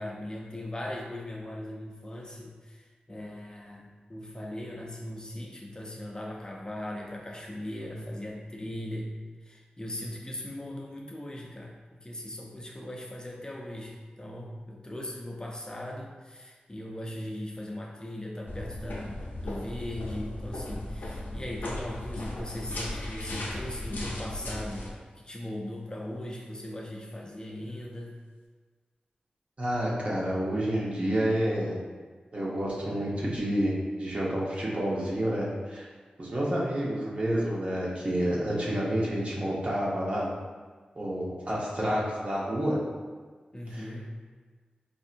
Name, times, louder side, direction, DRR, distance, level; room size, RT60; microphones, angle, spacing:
voice 1, 0.0-24.9 25.1-28.1 43.5-44.1, left 1 dB, 25° left, 0 dB, 0.5 m, -39 dB
sound 1, 18.5-24.9, left 1 dB, 80° left, 0.6 m, -36 dB
voice 2, 29.6-31.8 32.3-35.9 36.2-40.3 41.0-42.8 43.7-44.1, equal, 40° right, -5 dB, 1.0 m, -29 dB
4.3 x 2.6 x 2.5 m, 1.4 s
cardioid pair, 40°, 3 cm